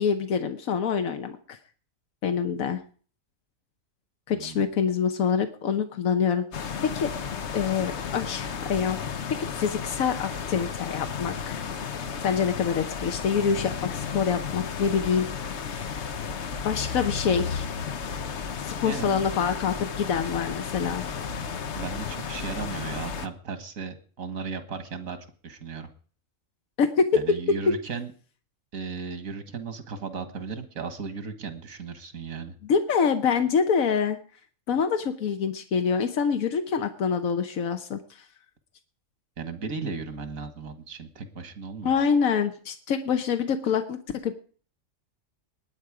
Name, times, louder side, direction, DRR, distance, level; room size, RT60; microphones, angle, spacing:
voice 1, 0.0-1.6 2.2-2.8 4.3-7.1 7.5-9.0 9.5-11.6 12.2-16.0 16.6-17.7 18.7-21.0 26.8-27.0 32.7-34.2 34.7-38.2 41.8-44.3, left 6 dB, 90° left, 7 dB, 1.3 m, -26 dB
voice 2, 4.3-4.6 18.8-19.3 21.7-25.2 25.4-25.9 27.1-28.1 28.7-32.6 39.4-41.9, right 5 dB, 90° right, 10 dB, 1.9 m, -36 dB
sound 1, 6.5-23.3, left 6 dB, 60° left, 1.1 m, -33 dB
20.5 x 9.1 x 4.9 m, 0.43 s
omnidirectional pair, 1.4 m